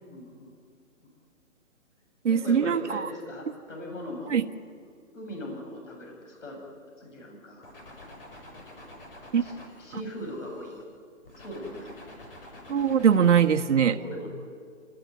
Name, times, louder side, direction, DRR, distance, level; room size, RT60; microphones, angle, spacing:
voice 1, 0.1-0.5 2.3-4.4 4.8-4.9 5.1-6.6 7.0-7.7 9.4-10.8 11.4-11.9 14.0-14.3, left 1 dB, 65° left, 1 dB, 7.6 m, -39 dB
voice 2, 2.2-3.1 4.3-4.4 9.3-9.4 12.7-14.0, right 7 dB, 60° right, 5 dB, 1.4 m, -22 dB
sound 1, 7.6-10.8 11.2-13.6, left 1 dB, 45° left, 6.5 m, -48 dB
28.0 x 18.0 x 9.4 m, 2.2 s
hypercardioid pair, 170°, 40 cm